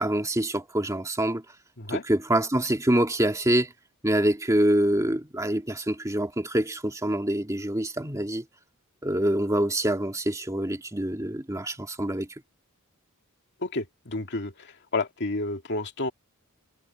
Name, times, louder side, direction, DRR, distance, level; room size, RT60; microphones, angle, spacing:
voice 1, 0.0-1.4 1.9-3.7 4.0-8.4 9.0-12.3, right 1 dB, 15° right, 2.4 m, -25 dB
voice 2, 13.6-16.1, left 2 dB, 55° left, 2.2 m, -30 dB
head